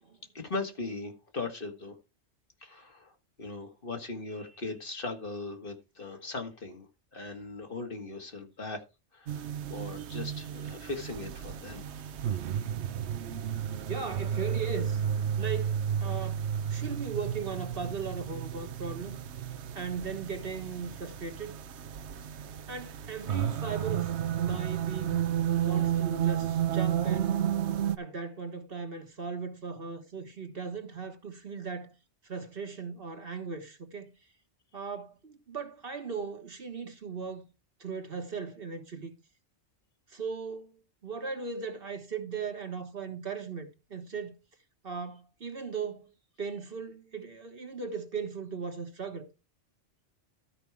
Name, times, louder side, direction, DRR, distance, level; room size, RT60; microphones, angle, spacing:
voice 1, 0.3-2.0 2.6-3.1 3.4-6.9 7.1-8.8 9.1-11.8, left 3 dB, 50° left, 1.9 m, -39 dB
sound 1, 9.3-27.9, right 9 dB, 80° right, 1.0 m, -32 dB
voice 2, 13.8-15.0 15.4-19.2 19.7-21.5 22.7-24.1 24.4-25.2 25.6-27.6 28.0-31.9 32.2-34.1 34.7-37.5 37.8-39.1 40.1-44.4 44.8-46.1 46.4-49.3, right 5 dB, 55° right, 1.6 m, -38 dB
13.0 x 5.3 x 4.7 m
omnidirectional pair, 1.1 m